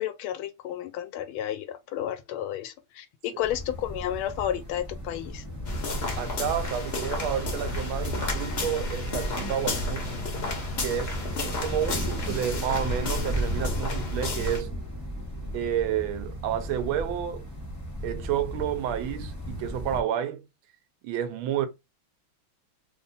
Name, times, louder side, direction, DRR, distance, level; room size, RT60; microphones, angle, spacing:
voice 1, 0.0-5.4, left 11 dB, 85° left, 1.5 m, -32 dB
sound 1, 3.4-20.0, equal, 20° left, 0.5 m, -35 dB
sound 2, 5.0-14.4, right 3 dB, 50° right, 0.4 m, -51 dB
sound 3, 5.6-14.6, left 2 dB, 50° left, 0.7 m, -32 dB
voice 2, 6.2-10.1 10.8-14.7 15.5-17.5 18.0-20.5 21.0-21.7, right 10 dB, 80° right, 1.4 m, -30 dB
3.5 x 2.2 x 3.8 m
omnidirectional pair, 2.3 m